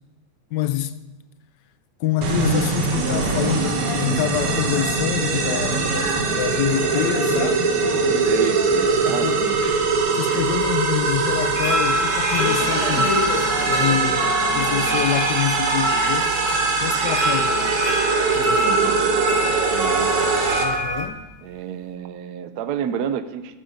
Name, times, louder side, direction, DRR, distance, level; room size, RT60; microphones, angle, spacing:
voice 1, 0.5-1.0 2.0-7.8 9.1-9.4 9.6-9.8 10.1-13.2 13.7-16.3 16.8-17.8 18.3-18.8 20.6-21.3, left 12 dB, 70° left, 1.0 m, -26 dB
sound 1, 2.2-20.6, right 4 dB, 85° right, 2.2 m, -22 dB
sound 2, 2.4-9.9 10.2-10.6 10.9-11.0 12.4-15.0 15.4-15.6 16.3-16.4 17.3-17.4 18.2-18.3, left 1 dB, 45° left, 3.8 m, -31 dB
voice 2, 8.2-9.6 18.6-20.3 21.4-23.6, right 8 dB, 65° right, 1.0 m, -30 dB
sound 3, 10.4-21.1, right 1 dB, 40° right, 1.6 m, -25 dB
13.0 x 9.4 x 5.1 m
omnidirectional pair, 2.3 m